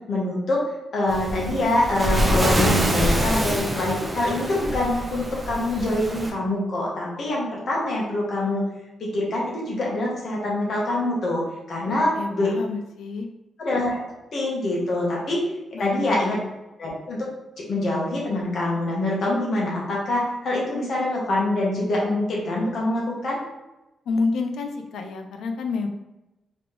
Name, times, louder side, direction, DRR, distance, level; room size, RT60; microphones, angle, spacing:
voice 1, 0.1-0.6 0.9-8.7 9.0-12.5 13.6-14.0 14.3-15.4 15.8-16.4 16.8-17.3 17.6-23.4, left 1 dB, 50° left, -3 dB, 1.3 m, -25 dB
Waves surf, 1.1-6.3, right 1 dB, 15° right, 0.6 m, -25 dB
voice 2, 11.9-13.3 15.7-16.4 24.1-25.9, left 4 dB, 85° left, 5 dB, 0.5 m, -29 dB
4.0 x 3.2 x 3.3 m, 0.98 s
wide cardioid pair, 165°, 0 cm